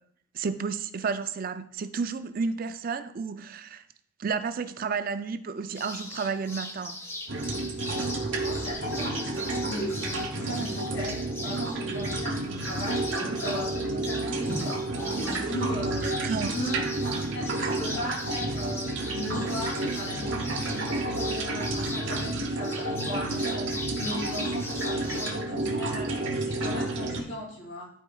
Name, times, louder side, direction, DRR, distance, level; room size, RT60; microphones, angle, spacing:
voice 1, 0.3-3.8 4.2-7.0 16.2-16.6, right 5 dB, 45° right, 0.4 m, -31 dB
sound 1, 5.7-25.3, left 1 dB, 10° left, 0.6 m, -40 dB
sound 2, 7.3-27.2, right 2 dB, 60° right, 0.9 m, -31 dB
voice 2, 8.4-14.8 15.2-16.3 16.5-16.8 17.1-27.9, equal, 75° left, 3.0 m, -37 dB
sound 3, 9.9-11.5 11.9-12.5 13.2-14.2 14.5-15.2 15.7-16.2 16.8-17.2 17.9-18.4 19.3-19.9 20.2-20.4, equal, 45° left, 1.3 m, -42 dB
11.5 x 4.5 x 2.3 m
head